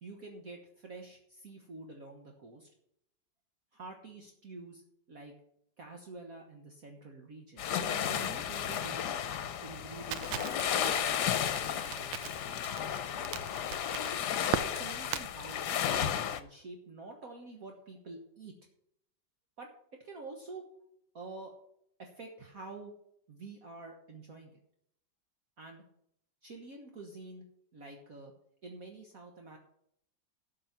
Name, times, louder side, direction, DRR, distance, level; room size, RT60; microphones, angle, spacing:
voice 1, 0.0-2.7 3.7-4.8 5.1-5.3 5.8-9.2 9.6-12.7 14.6-18.5 19.6-19.7 20.0-20.6 21.1-21.5 22.0-22.9 23.3-24.6 25.6-25.8 26.4-27.4 27.7-28.3 28.6-29.6, right 3 dB, 50° right, 2 dB, 1.7 m, -48 dB
sound 1, 7.6-16.4, left 9 dB, 65° left, 1.3 m, -33 dB
Crackle, 10.1-15.3, right 11 dB, 85° right, 1.4 m, -38 dB
12.5 x 6.7 x 5.9 m, 0.73 s
omnidirectional pair, 2.0 m